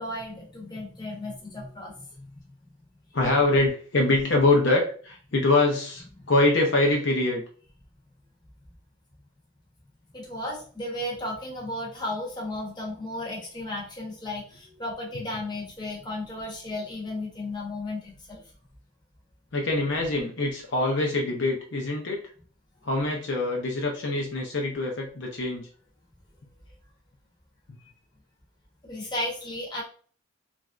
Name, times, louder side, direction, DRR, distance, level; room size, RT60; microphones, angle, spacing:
voice 1, 0.0-2.3 10.1-18.4 28.8-29.8, left 1 dB, 20° left, -3 dB, 0.9 m, -34 dB
voice 2, 3.1-7.4 19.5-22.2 22.8-25.7, left 2 dB, 60° left, 0 dB, 0.6 m, -24 dB
3.2 x 2.5 x 2.4 m, 0.42 s
head